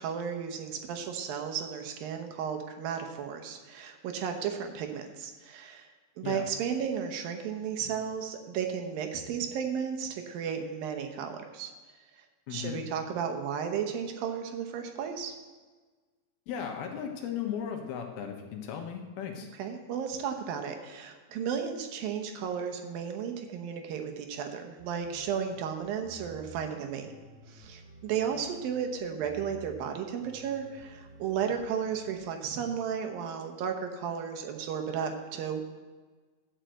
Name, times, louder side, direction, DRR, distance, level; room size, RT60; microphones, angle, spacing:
voice 1, 0.0-5.9 6.2-11.7 12.5-15.3 19.6-27.1 27.5-35.6, right 7 dB, 75° right, 5 dB, 2.7 m, -34 dB
voice 2, 12.5-12.8 16.5-19.5, left 8 dB, 90° left, 3 dB, 3.2 m, -36 dB
sound 1, 24.8-32.2, right 2 dB, 20° right, 2.7 m, -52 dB
11.5 x 5.8 x 7.7 m, 1.3 s
omnidirectional pair, 4.3 m